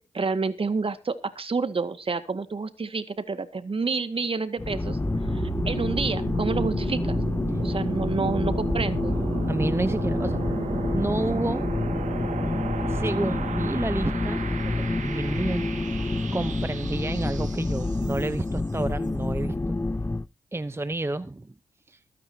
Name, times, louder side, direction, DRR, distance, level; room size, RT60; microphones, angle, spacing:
voice 1, 0.1-5.0 5.3-7.2 7.6-9.1, right 4 dB, 45° right, 10 dB, 2.0 m, -29 dB
sound 1, 4.6-20.3, left 2 dB, 20° left, 0.6 m, -28 dB
sound 2, 4.8-18.6, right 6 dB, 75° right, 2.1 m, -35 dB
voice 2, 9.5-10.4 10.9-11.6 12.9-15.7 16.3-19.6 20.5-21.5 21.9-22.0, right 2 dB, 20° right, 13 dB, 0.8 m, -30 dB
22.5 x 9.7 x 2.9 m, 0.29 s
supercardioid pair, 50°, 13 cm